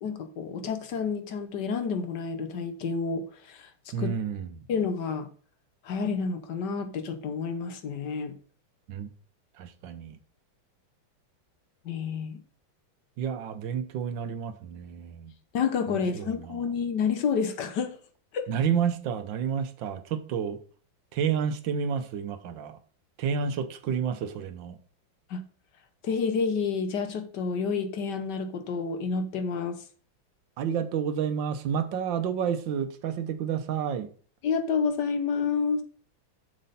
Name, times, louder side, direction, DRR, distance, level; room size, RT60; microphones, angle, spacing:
voice 1, 0.0-3.7 4.0-4.1 4.7-5.3 5.8-8.3 11.8-12.4 15.5-18.0 18.3-18.5 25.3-25.4 26.0-29.8 34.4-35.8, left 5 dB, 65° left, 1.5 m, -29 dB
voice 2, 3.9-4.6 8.9-9.1 9.6-10.2 13.2-15.3 15.9-16.6 18.5-20.6 21.1-22.8 23.2-24.8 30.6-34.1, right 7 dB, 75° right, 1.5 m, -30 dB
7.5 x 6.6 x 4.1 m
omnidirectional pair, 2.1 m